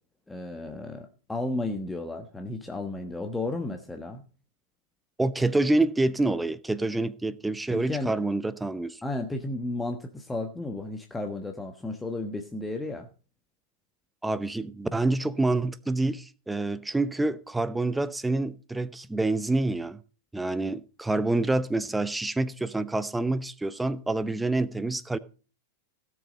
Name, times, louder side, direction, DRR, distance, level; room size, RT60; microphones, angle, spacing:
voice 1, 0.3-4.2 7.7-8.2 9.0-13.1, left 2 dB, 10° left, 1.3 m, -33 dB
voice 2, 5.2-9.0 14.2-20.0 20.3-25.2, right 2 dB, 5° right, 0.8 m, -27 dB
16.5 x 7.2 x 5.3 m
figure-of-eight pair, 90°, 0 cm